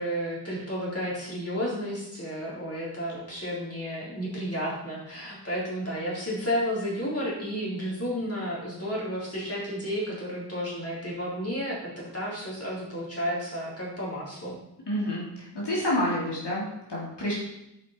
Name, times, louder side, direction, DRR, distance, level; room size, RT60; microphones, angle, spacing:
voice 1, 0.0-14.6, equal, 35° left, -6 dB, 4.2 m, -32 dB
voice 2, 14.9-17.3, left 1 dB, 75° left, -6 dB, 2.9 m, -29 dB
9.7 x 8.3 x 4.4 m, 0.86 s
wide cardioid pair, 85°, 42 cm